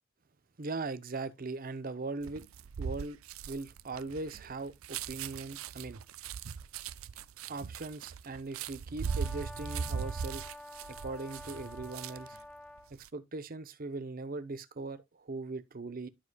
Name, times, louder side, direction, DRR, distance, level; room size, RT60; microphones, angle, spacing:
voice 1, 0.6-2.4 2.8-3.2 3.4-6.0 7.5-10.5 10.9-12.4 12.9-16.1, right 3 dB, 45° right, 0.7 m, -40 dB
sound 1, 2.2-12.4 12.8-13.1, right 6 dB, 90° right, 0.5 m, -39 dB
Brass instrument, 9.0-12.9, left 1 dB, 5° left, 0.3 m, -48 dB
11.5 x 4.8 x 2.3 m
head